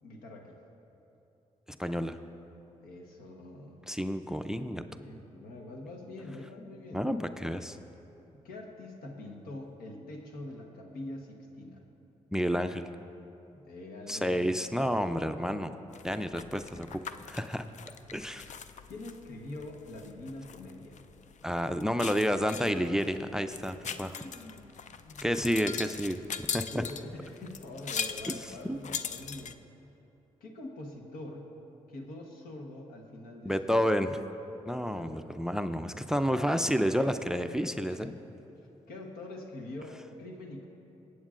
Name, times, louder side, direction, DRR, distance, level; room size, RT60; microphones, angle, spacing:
voice 1, 0.0-0.6 2.8-3.8 4.6-7.1 8.4-11.8 13.5-14.6 15.2-15.8 18.9-21.0 23.9-25.3 26.7-29.6 30.4-31.5 31.9-33.9 34.8-35.5 36.3-36.6 37.9-38.2 38.9-40.7, left 1 dB, 85° left, 2 dB, 1.2 m, -45 dB
voice 2, 1.8-2.2 3.9-4.8 6.9-7.8 12.3-12.9 14.1-15.7 16.0-17.0 17.3-17.7 18.1-18.4 21.4-24.2 25.2-26.2 26.5-26.8 28.3-28.8 33.4-34.2 34.7-38.1, equal, 5° right, 10 dB, 0.4 m, -30 dB
sound 1, 15.9-29.5, left 7 dB, 55° left, 0.5 m, -41 dB
22.0 x 8.2 x 2.5 m, 2.9 s
supercardioid pair, 55°, 15 cm